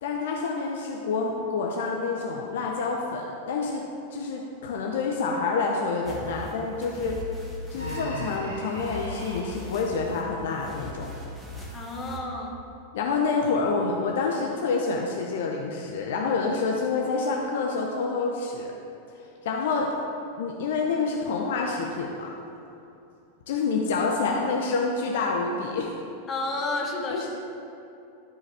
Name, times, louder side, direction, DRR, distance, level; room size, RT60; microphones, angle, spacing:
voice 1, 0.0-3.8 4.1-7.2 7.7-11.1 12.9-18.7 19.4-19.9 20.4-22.3 23.5-25.9 27.1-27.3, left 4 dB, 55° left, 0 dB, 0.7 m, -27 dB
sound 1, 6.1-12.2, left 1 dB, ahead, 1.3 m, -40 dB
Human voice, 7.7-9.6, equal, 90° right, 1.5 m, -37 dB
voice 2, 11.7-12.6 26.3-27.3, left 2 dB, 20° left, -1 dB, 1.2 m, -31 dB
12.0 x 4.7 x 3.5 m, 2.7 s
figure-of-eight pair, 90°, 0 cm